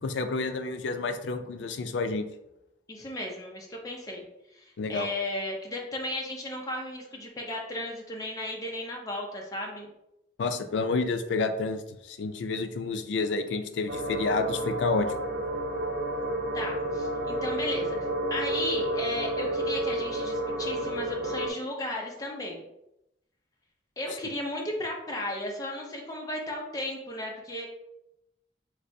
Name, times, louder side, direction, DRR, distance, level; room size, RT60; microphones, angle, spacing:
voice 1, 0.0-2.2 4.8-5.1 10.4-15.1, left 3 dB, 90° left, 8 dB, 0.4 m, -29 dB
voice 2, 2.9-4.2 4.5-9.9 16.5-22.6 24.0-27.7, left 1 dB, 20° left, -1 dB, 0.6 m, -35 dB
sound 1, 13.9-21.5, right 1 dB, 65° right, 0.6 m, -30 dB
3.2 x 3.2 x 2.7 m, 0.86 s
head